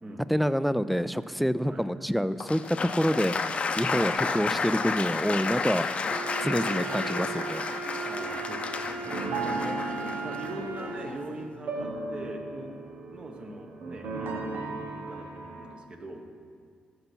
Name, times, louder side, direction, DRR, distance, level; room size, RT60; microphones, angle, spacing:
voice 1, 0.3-5.9 6.4-7.7, equal, ahead, 15 dB, 0.3 m, -27 dB
Applause, 2.4-11.3, left 4 dB, 40° left, 0.6 m, -32 dB
Wind instrument woodwind instrument, 6.0-11.2, right 6 dB, 55° right, 1.0 m, -37 dB
voice 2, 8.0-12.7 13.1-16.2, right 2 dB, 35° right, 3 dB, 1.3 m, -42 dB
sound 1, 8.0-11.3 11.7-15.7, right 3 dB, 85° right, 1.1 m, -36 dB
13.5 x 6.7 x 4.5 m, 2.2 s
cardioid pair, 100°, 3 cm